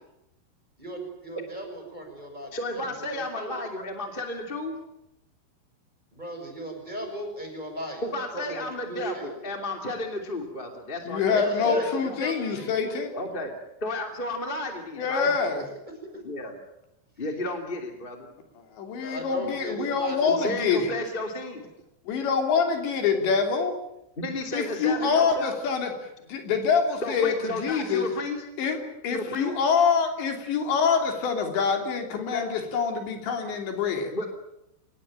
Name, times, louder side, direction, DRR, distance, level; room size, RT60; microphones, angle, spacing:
voice 1, 0.8-2.8 3.1-3.5 6.1-8.0 8.3-9.3 11.3-13.0 15.2-15.7 19.0-21.0 25.0-25.1, equal, 10° right, 3 dB, 6.0 m, -36 dB
voice 2, 2.5-4.8 8.0-12.2 13.1-13.5 13.8-15.3 16.1-16.5 17.2-18.3 19.4-19.5 20.3-21.7 24.2-25.6 27.0-28.4 29.1-29.6 32.3-32.5 34.1-34.3, left 2 dB, 15° left, 4 dB, 1.8 m, -33 dB
voice 3, 11.1-13.1 15.0-15.6 18.8-20.9 22.1-23.7 24.5-25.9 26.3-28.1 28.6-34.1, left 5 dB, 70° left, 4 dB, 5.3 m, -25 dB
25.5 x 20.0 x 9.0 m, 0.85 s
omnidirectional pair, 5.4 m